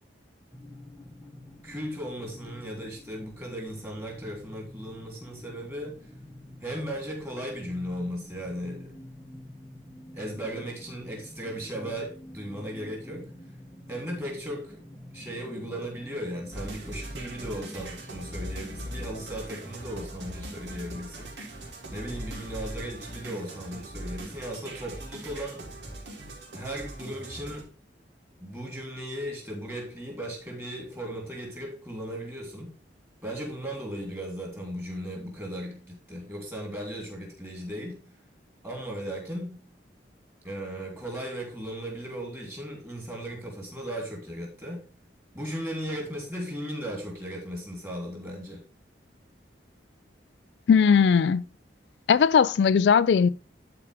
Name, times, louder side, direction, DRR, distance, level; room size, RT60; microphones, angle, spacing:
sound 1, 0.5-19.3, left 1 dB, 10° left, 0.8 m, -48 dB
voice 1, 1.6-6.1 6.6-9.0 10.1-13.3 13.9-14.8 15.1-21.3 21.9-25.6 26.5-27.7 28.4-32.7 33.2-38.0 38.6-39.6 40.4-44.8 45.3-48.6, equal, 15° right, 3.1 m, -36 dB
sound 2, 16.5-27.6, right 1 dB, 80° right, 2.6 m, -40 dB
voice 2, 50.7-51.4 52.1-53.3, left 6 dB, 70° left, 0.3 m, -19 dB
12.0 x 4.7 x 3.5 m
head